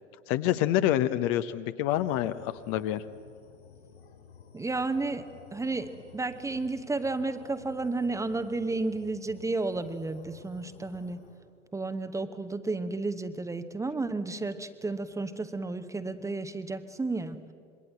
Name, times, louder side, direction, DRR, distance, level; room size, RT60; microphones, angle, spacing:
voice 1, 0.3-3.0, left 12 dB, 40° left, 12 dB, 0.9 m, -27 dB
sound 1, 1.9-11.4, left 6 dB, 65° left, 5.3 m, -53 dB
voice 2, 4.5-5.3 5.5-11.2 11.7-17.4, right 3 dB, 10° right, 10 dB, 1.0 m, -32 dB
26.5 x 22.0 x 8.0 m, 2.2 s
figure-of-eight pair, 90°, 36 cm